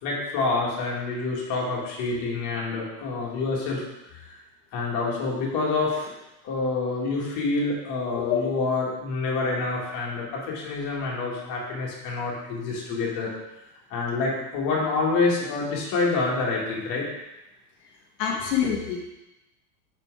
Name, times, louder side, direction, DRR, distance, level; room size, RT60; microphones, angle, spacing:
voice 1, 0.0-3.8 4.2-4.4 4.7-6.1 6.4-13.3 13.9-17.1 18.4-18.5, left 3 dB, 45° left, -3 dB, 1.9 m, -27 dB
voice 2, 18.2-19.1, left 8 dB, 80° left, -2 dB, 1.3 m, -26 dB
5.2 x 4.5 x 4.6 m, 0.97 s
supercardioid pair, 130°, 48 cm